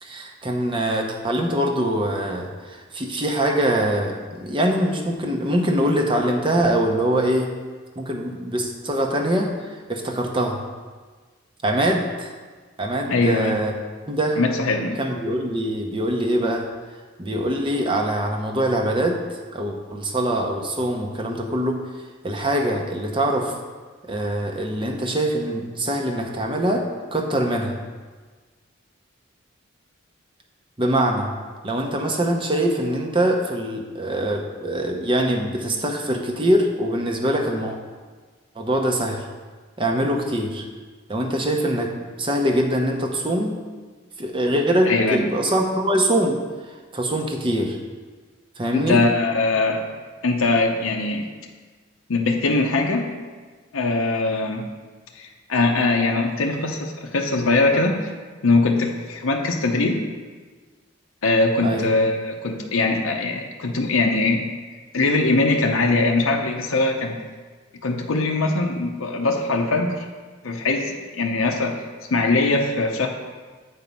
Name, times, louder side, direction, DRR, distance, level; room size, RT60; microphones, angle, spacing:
voice 1, 0.0-7.5 8.0-10.6 11.6-12.3 12.8-13.7 14.1-14.4 15.0-16.7 17.2-19.2 19.5-21.8 22.2-23.6 24.0-27.7 30.8-31.3 31.6-37.8 38.6-39.2 39.8-40.6 41.1-43.6 44.2-46.4 46.9-47.8 48.6-49.0 61.6-61.9, right 1 dB, 25° right, 2 dB, 0.8 m, -23 dB
voice 2, 13.1-13.6 14.4-15.0 44.9-45.3 48.7-50.0 50.2-51.3 52.1-53.1 53.7-54.7 55.1-58.1 58.4-60.0 61.2-64.5 64.9-67.2 67.8-70.1 70.4-71.8 72.1-73.1, left 3 dB, 90° left, 2 dB, 0.7 m, -21 dB
8.2 x 4.5 x 5.3 m, 1.4 s
head